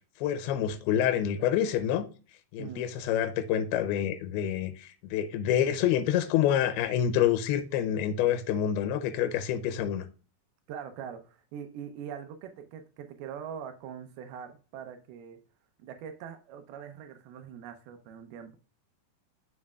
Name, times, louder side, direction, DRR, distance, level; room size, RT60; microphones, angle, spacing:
voice 1, 0.2-2.0 2.5-10.1, left 10 dB, 85° left, 2.6 m, -27 dB
voice 2, 2.6-2.9 10.7-15.4 15.8-18.6, right 8 dB, 85° right, 2.6 m, -42 dB
7.4 x 6.0 x 2.3 m
omnidirectional pair, 4.4 m